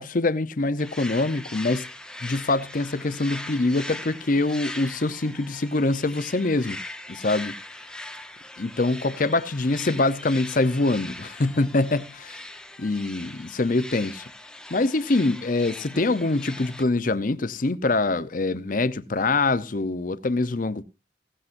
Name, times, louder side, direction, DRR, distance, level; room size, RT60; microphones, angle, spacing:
voice 1, 0.0-1.9 2.2-6.8 7.1-7.5 8.6-12.4 12.8-14.3 14.7-20.8, left 2 dB, 45° left, 0.7 m, -24 dB
sound 1, 0.8-16.8, left 1 dB, 5° left, 0.8 m, -40 dB
17.0 x 15.5 x 2.6 m
head